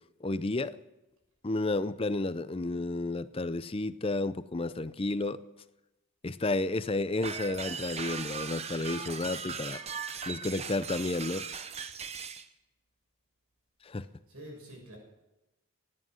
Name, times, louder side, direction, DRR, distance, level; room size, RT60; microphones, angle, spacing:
voice 1, 0.2-0.8 1.4-5.4 6.2-9.8 10.3-11.4 13.8-14.1, left 2 dB, 25° left, 15 dB, 0.5 m, -31 dB
sound 1, 7.2-12.5, right 6 dB, 30° right, 0.8 m, -38 dB
voice 2, 14.0-15.0, equal, 80° right, -1 dB, 6.7 m, -48 dB
16.5 x 9.8 x 7.6 m, 0.99 s
head